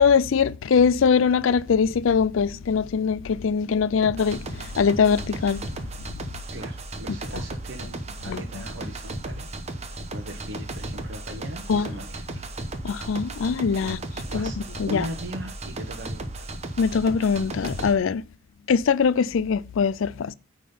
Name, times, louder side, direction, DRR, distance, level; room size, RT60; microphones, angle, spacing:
voice 1, 0.0-5.6 8.3-8.4 11.7-11.9 12.8-14.0 14.3-14.5 14.8-15.0 16.8-18.2 18.7-20.3, left 6 dB, 75° left, 0.4 m, -22 dB
sound 1, 4.0-17.9, right 2 dB, 35° right, 0.9 m, -35 dB
voice 2, 6.5-12.4 13.8-16.5, equal, 60° right, 1.1 m, -39 dB
9.3 x 3.8 x 5.5 m
head